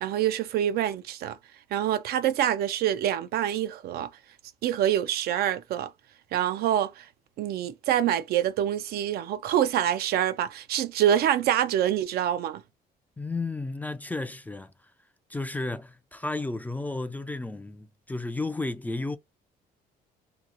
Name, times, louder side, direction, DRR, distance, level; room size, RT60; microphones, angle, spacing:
voice 1, 0.0-1.4 1.7-4.1 4.6-5.9 6.3-7.0 7.4-12.6, right 11 dB, 65° right, 0.5 m, -26 dB
voice 2, 13.2-14.7 15.3-19.2, left 2 dB, 10° left, 0.4 m, -33 dB
2.9 x 2.3 x 3.8 m
cardioid pair, 110°, 17 cm